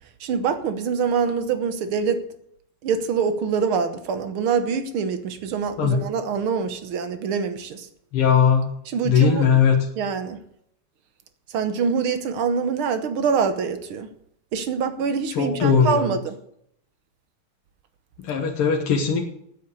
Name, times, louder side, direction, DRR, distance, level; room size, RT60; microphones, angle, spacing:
voice 1, 0.2-2.2 2.8-7.9 8.9-9.5 10.0-10.4 11.5-14.1 14.5-16.4, right 6 dB, 75° right, 10 dB, 1.9 m, -25 dB
voice 2, 8.1-8.7 9.0-9.8 15.4-16.1 18.2-19.3, left 6 dB, 90° left, 0 dB, 2.2 m, -19 dB
9.3 x 9.1 x 8.2 m, 0.70 s
omnidirectional pair, 2.4 m